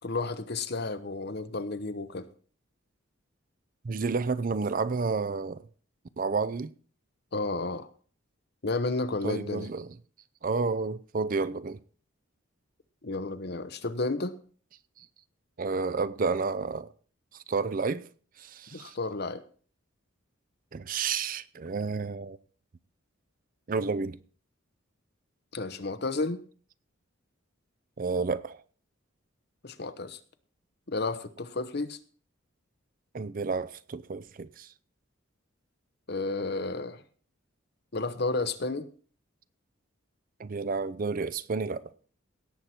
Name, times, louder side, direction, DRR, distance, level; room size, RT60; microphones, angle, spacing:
voice 1, 0.0-2.3 7.3-7.9 8.6-9.7 13.0-14.3 18.7-19.4 25.5-26.4 29.6-30.2 30.9-32.0 36.1-37.0 37.9-38.9, left 3 dB, 50° left, 0.9 m, -32 dB
voice 2, 3.8-5.6 6.2-6.7 9.2-9.9 10.4-11.8 15.0-15.1 15.6-16.9 17.5-18.0 18.4-18.9 20.7-22.4 23.7-24.2 28.0-28.6 33.1-34.7 40.4-41.9, right 4 dB, 40° right, 0.5 m, -30 dB
17.5 x 7.7 x 4.3 m
head